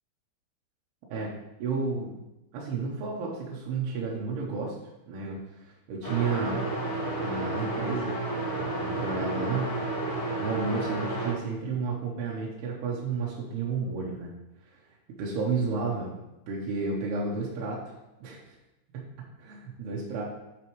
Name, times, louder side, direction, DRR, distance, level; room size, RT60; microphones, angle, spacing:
voice 1, 1.6-2.1 2.5-4.8 5.1-6.7 7.2-8.1 8.5-9.7 10.3-14.3 14.7-14.8 15.2-16.1 16.5-17.8 18.2-18.6 18.9-20.2, right 4 dB, 70° right, -4 dB, 2.8 m, -32 dB
sound 1, 6.0-11.3, right 2 dB, 40° left, 2.1 m, -31 dB
10.0 x 5.4 x 3.1 m, 0.96 s
omnidirectional pair, 5.3 m